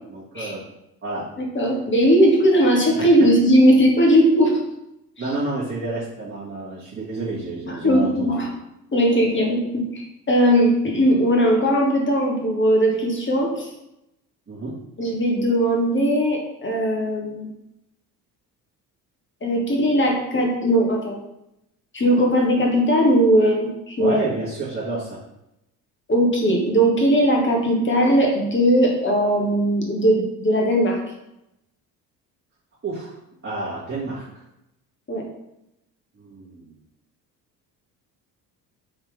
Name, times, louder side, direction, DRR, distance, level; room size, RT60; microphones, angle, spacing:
voice 1, 0.1-0.6 1.0-1.2 3.0-3.3 5.2-8.3 14.5-14.7 24.0-25.2 32.8-33.1 33.4-34.4 36.1-36.7, right 2 dB, 25° right, -9 dB, 1.5 m, -29 dB
voice 2, 1.4-4.6 7.7-8.5 8.9-13.7 15.0-17.5 19.4-21.2 21.9-24.2 26.1-31.0 35.1-35.2, equal, 25° left, 0 dB, 1.2 m, -19 dB
3.6 x 3.2 x 3.3 m, 0.85 s
hypercardioid pair, 55°, 49 cm